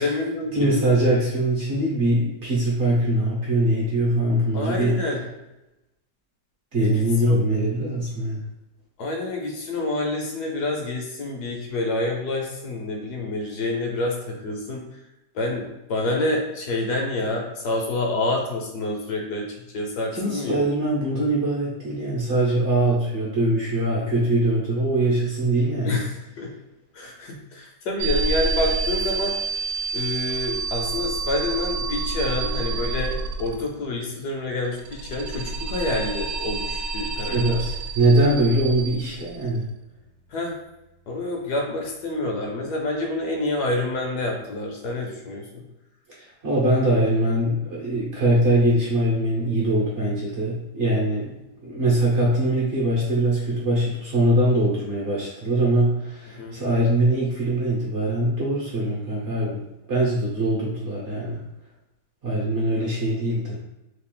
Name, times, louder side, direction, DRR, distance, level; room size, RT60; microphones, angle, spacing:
voice 1, 0.0-0.8 4.5-5.2 6.8-7.4 9.0-14.9 15.3-20.6 25.9-26.5 26.9-29.4 29.9-37.6 40.3-40.5 41.1-45.6 56.3-56.6, left 2 dB, 70° left, 0 dB, 1.2 m, -28 dB
voice 2, 0.5-5.0 6.7-8.4 20.1-26.0 37.3-39.7 46.4-51.3 51.6-59.6 59.9-61.4 62.2-63.6, right 1 dB, 50° right, -5 dB, 0.9 m, -22 dB
sound 1, 28.0-33.8 34.6-39.6, right 4 dB, 90° right, 1.2 m, -28 dB
3.2 x 2.4 x 3.7 m, 0.93 s
omnidirectional pair, 1.9 m